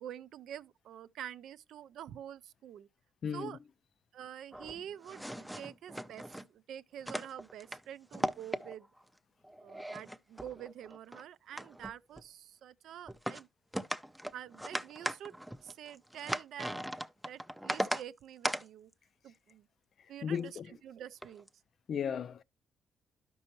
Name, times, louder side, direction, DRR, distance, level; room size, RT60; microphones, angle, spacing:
voice 1, 0.0-2.9 3.3-3.6 4.1-5.2 5.6-6.2 6.5-8.9 9.6-13.5 14.3-15.4 15.6-16.9 17.3-18.9 19.2-19.7 20.1-21.5, right 10 dB, 75° right, 0.4 m, -47 dB
sound 1, 4.5-6.4 7.0-7.8 8.1-9.0 9.4-11.2 11.5-12.2 13.1-13.4 13.7-18.0 18.4-18.6 20.4-20.6 21.2-21.5, equal, 5° right, 0.4 m, -38 dB
voice 2, 20.2-20.7 21.9-22.4, left 7 dB, 55° left, 0.4 m, -35 dB
12.0 x 5.3 x 2.9 m
cardioid pair, 90°, 0 cm